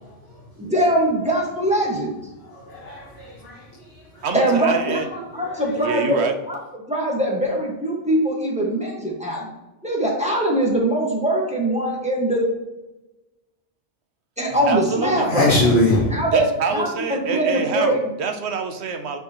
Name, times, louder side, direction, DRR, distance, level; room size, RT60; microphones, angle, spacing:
voice 1, 0.0-0.7 2.3-4.6 5.3-5.9 14.7-14.9 15.2-16.3, left 2 dB, 55° left, 1.7 m, -24 dB
voice 2, 0.6-2.2 4.3-6.6 6.9-9.5 9.8-12.5 14.4-15.5 16.1-18.0, right 1 dB, 5° right, 1.4 m, -22 dB
voice 3, 4.2-5.0 5.8-6.3 14.7-15.3 16.3-19.2, right 5 dB, 65° right, 1.0 m, -26 dB
10.5 x 4.6 x 3.0 m
omnidirectional pair, 1.3 m